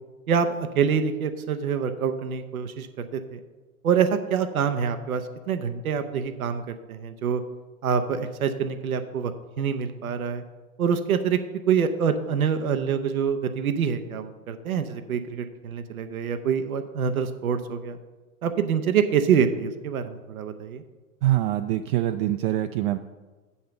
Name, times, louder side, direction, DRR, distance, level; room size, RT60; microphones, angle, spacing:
voice 1, 0.7-3.4 3.8-7.4 7.8-9.3 9.6-10.4 10.8-11.4 11.7-18.0 18.4-20.8, right 7 dB, 85° right, 8 dB, 0.8 m, -26 dB
voice 2, 21.2-23.0, right 14 dB, 45° right, 8 dB, 0.4 m, -24 dB
7.7 x 5.6 x 6.7 m, 1.3 s
hypercardioid pair, 105°, 42 cm